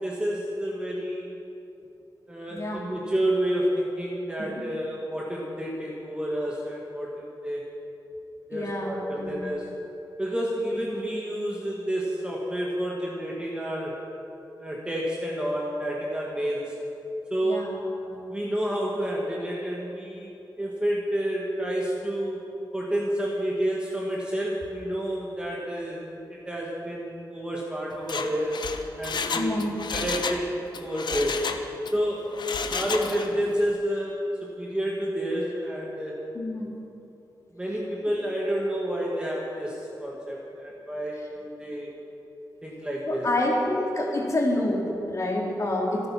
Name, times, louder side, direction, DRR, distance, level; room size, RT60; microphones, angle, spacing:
voice 1, 0.0-1.3 2.3-7.7 8.5-9.7 10.2-14.0 14.6-16.7 17.3-17.7 18.3-20.3 20.6-22.4 22.7-28.7 29.0-29.6 29.9-31.4 31.9-32.4 32.7-36.3 37.5-41.9 42.6-43.3, equal, 10° right, -4 dB, 1.9 m, -29 dB
voice 2, 2.5-2.8 8.5-9.4 17.4-17.7 18.0-18.2 29.3-29.7 36.3-36.7 43.1-46.1, left 1 dB, 40° left, -2 dB, 3.0 m, -27 dB
Mechanisms, 27.9-30.4 30.7-31.9 32.3-33.4 33.7-33.8, left 5 dB, 70° left, 0.9 m, -31 dB
26.0 x 9.1 x 6.0 m, 3.0 s
wide cardioid pair, 150°, 8 cm